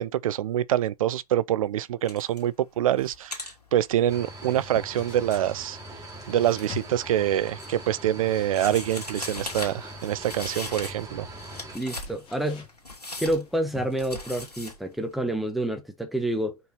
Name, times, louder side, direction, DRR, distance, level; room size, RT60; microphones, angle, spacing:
voice 1, 0.0-5.8 6.3-11.3, right 12 dB, 60° right, 0.5 m, -25 dB
sound 1, 2.0-2.5 2.8-6.8 7.2-8.0 8.5-11.1 11.3-14.8, left 2 dB, 90° left, 2.6 m, -39 dB
sound 2, 3.9-14.2, left 7 dB, 25° left, 2.7 m, -48 dB
sound 3, 4.1-11.8, right 1 dB, 15° right, 3.0 m, -42 dB
voice 2, 11.7-12.7 13.2-16.6, right 1 dB, ahead, 1.2 m, -28 dB
5.4 x 4.6 x 4.2 m
figure-of-eight pair, 95°, 20 cm